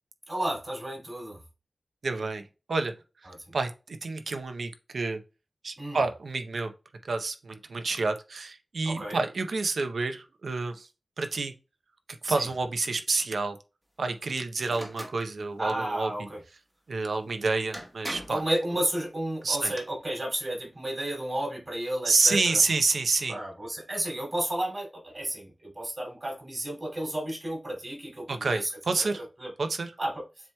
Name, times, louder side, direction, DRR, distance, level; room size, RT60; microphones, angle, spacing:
voice 1, 0.3-1.4 3.2-3.5 5.8-6.0 8.8-9.2 12.2-12.5 15.6-16.4 18.3-22.6 23.3-28.7 29.0-29.1 29.4-29.5 30.0-30.2, right 1 dB, 35° right, 2.6 m, -32 dB
voice 2, 2.0-2.4 2.7-2.9 3.5-5.2 5.6-6.7 7.0-10.9 11.2-11.5 12.2-13.6 14.0-16.1 16.9-18.4 19.4-19.7 22.1-23.4 28.3-29.2 29.6-29.9, right 3 dB, 85° right, 0.6 m, -28 dB
sound 1, 14.7-15.2 17.2-17.3 17.7-18.5 19.4-19.8, equal, 15° right, 1.0 m, -39 dB
7.4 x 2.9 x 2.2 m
wide cardioid pair, 95°, 0 cm